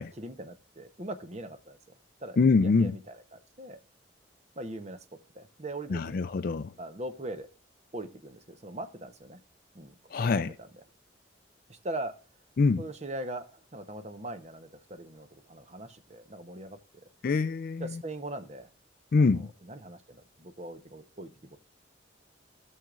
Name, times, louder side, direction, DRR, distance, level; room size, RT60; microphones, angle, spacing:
voice 1, 0.0-1.8 2.2-3.8 4.6-5.1 5.3-6.3 6.8-7.5 7.9-9.4 9.7-10.7 11.7-12.1 12.8-16.8 17.8-18.7 19.2-21.6, right 1 dB, 35° right, 0.9 m, -41 dB
voice 2, 2.4-3.0 5.9-6.7 10.1-10.5 12.6-12.8 17.2-18.0 19.1-19.5, left 4 dB, 50° left, 0.4 m, -25 dB
16.5 x 6.5 x 2.4 m
head